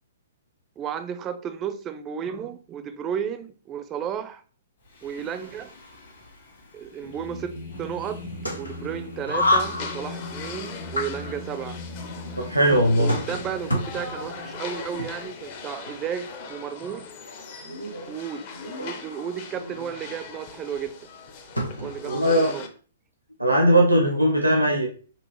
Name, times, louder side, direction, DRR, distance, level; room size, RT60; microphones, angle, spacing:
voice 1, 0.8-4.4 5.0-5.7 6.7-7.5 7.8-8.2 8.6-11.8 13.0-17.1 18.1-18.5 18.8-21.0 21.8-22.7, right 8 dB, 20° right, 0.4 m, -33 dB
Singing, 4.9-15.3, left 2 dB, 55° left, 1.6 m, -40 dB
sound 1, 7.7-22.2, left 1 dB, 85° left, 1.0 m, -32 dB
sound 2, 9.6-22.7, left 5 dB, 40° left, 0.6 m, -40 dB
voice 2, 12.4-13.1 17.9-18.1 22.0-22.6 23.4-24.9, right 1 dB, 90° right, 0.7 m, -19 dB
4.4 x 3.0 x 2.9 m
figure-of-eight pair, 115°, 0 cm